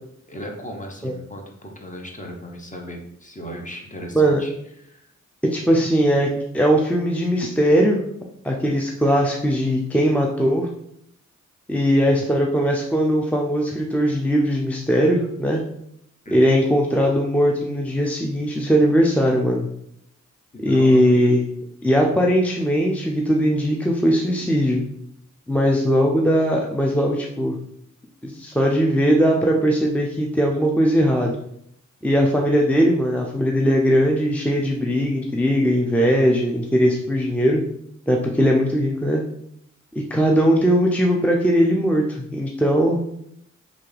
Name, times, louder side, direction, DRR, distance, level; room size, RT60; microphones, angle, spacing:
voice 1, 0.3-4.5 4.8-5.1 16.2-16.5 20.5-21.3 39.9-40.1, equal, 25° left, 2 dB, 0.9 m, -37 dB
voice 2, 5.5-6.3 6.5-8.0 8.4-10.7 11.7-15.6 16.3-19.7 20.6-21.4 21.8-24.8 25.5-27.6 28.2-31.4 32.0-37.6 38.1-39.2 40.1-43.0, equal, 5° left, -1 dB, 0.5 m, -19 dB
3.3 x 2.5 x 3.3 m, 0.75 s
supercardioid pair, 40°, 32 cm